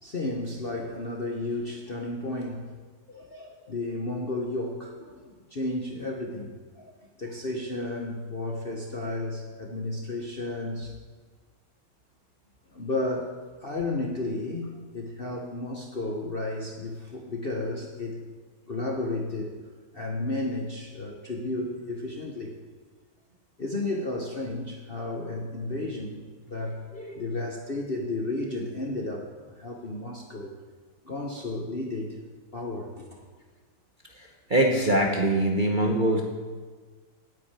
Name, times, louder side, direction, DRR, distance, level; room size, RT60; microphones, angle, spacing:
voice 1, 0.0-2.8 3.1-6.9 7.2-10.9 12.7-18.2 18.7-19.5 19.9-22.5 23.6-30.6 31.0-32.2 32.5-33.3, left 2 dB, 40° left, 0 dB, 0.9 m, -33 dB
voice 2, 34.5-36.2, right 1 dB, 30° right, -1 dB, 1.0 m, -22 dB
9.3 x 8.6 x 8.9 m, 1.5 s
omnidirectional pair, 2.2 m